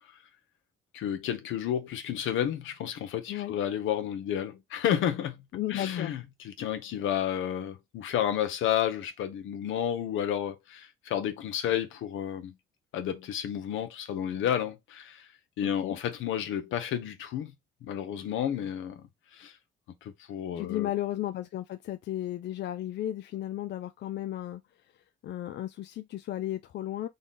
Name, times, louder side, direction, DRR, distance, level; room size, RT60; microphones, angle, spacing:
voice 1, 0.9-5.4 5.7-12.5 12.9-15.3 15.6-17.5 17.8-19.0 19.3-19.5 20.0-20.9, left 10 dB, 85° left, 0.9 m, -31 dB
voice 2, 5.5-6.1 15.6-16.0 20.5-24.6 25.2-27.1, left 13 dB, 60° left, 0.4 m, -34 dB
3.9 x 2.4 x 3.8 m
cardioid pair, 90°, 20 cm